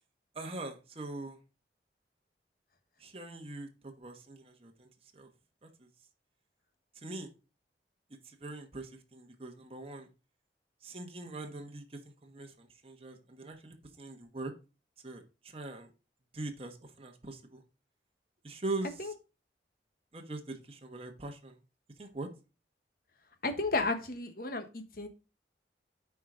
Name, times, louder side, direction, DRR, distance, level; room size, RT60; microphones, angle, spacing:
voice 1, 0.3-1.4 3.0-5.3 5.6-5.9 6.9-7.3 8.2-10.1 10.8-14.5 15.0-15.9 16.3-17.6 18.4-19.1 20.1-21.6 22.0-22.3, right 2 dB, 35° right, 1.1 m, -42 dB
voice 2, 23.4-25.1, left 3 dB, 55° left, 1.3 m, -33 dB
9.1 x 4.8 x 3.8 m
head